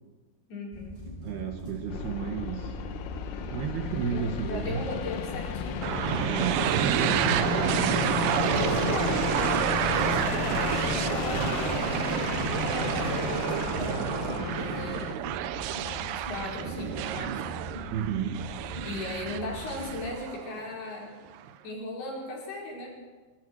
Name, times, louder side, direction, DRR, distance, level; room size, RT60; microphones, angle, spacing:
voice 1, 0.5-1.0 4.1-6.2 7.6-7.7 8.5-15.1 15.8-17.4 18.8-21.1 21.6-22.9, left 2 dB, 55° left, -3 dB, 6.8 m, -38 dB
sound 1, 0.7-20.1, equal, 10° left, 5.4 m, -42 dB
voice 2, 1.2-2.8 3.5-4.8 6.3-8.1 10.1-10.3 17.9-18.5, right 8 dB, 65° right, 4 dB, 3.1 m, -33 dB
sound 2, 1.9-15.1, left 8 dB, 85° left, 4.0 m, -33 dB
sound 3, 5.8-20.7, right 12 dB, 90° right, 2.3 m, -29 dB
24.5 x 23.0 x 4.7 m, 1.3 s
omnidirectional pair, 5.6 m